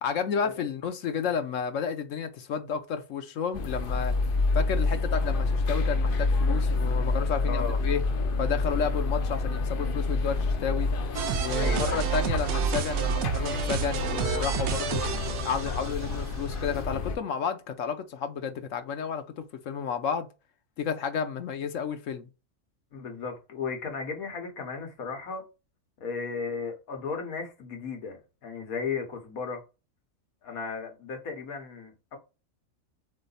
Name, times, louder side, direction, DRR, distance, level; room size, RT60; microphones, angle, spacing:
voice 1, 0.0-4.1 4.5-8.0 8.4-10.9 11.4-15.0 15.4-20.3 20.8-22.3, left 6 dB, 70° left, 1.0 m, -31 dB
sound 1, 3.5-17.2, left 3 dB, 55° left, 0.7 m, -28 dB
voice 2, 7.5-7.8 11.6-12.0 22.9-25.4 26.0-29.6 30.4-32.2, left 5 dB, 90° left, 1.6 m, -35 dB
sound 2, 11.1-16.3, right 7 dB, 65° right, 0.8 m, -29 dB
3.9 x 3.4 x 3.9 m
omnidirectional pair, 1.5 m